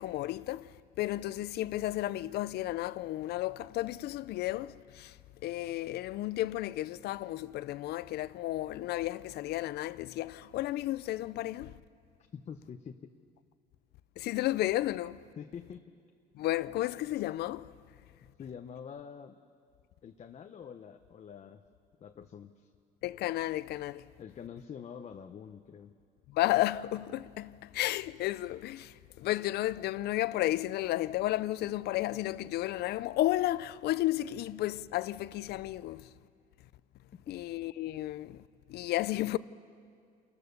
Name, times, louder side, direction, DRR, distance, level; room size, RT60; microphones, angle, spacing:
voice 1, 0.0-5.2 5.4-11.8 14.2-15.2 16.3-17.7 23.0-24.1 26.3-36.1 37.3-38.4 38.7-39.4, left 15 dB, 70° left, 0.5 m, -33 dB
voice 2, 12.3-13.1 15.4-15.9 18.4-19.4 20.0-21.6 22.0-22.7 24.2-25.9 37.1-37.4, left 7 dB, 40° left, 0.8 m, -46 dB
28.0 x 14.0 x 6.7 m
cardioid pair, 110°, 17 cm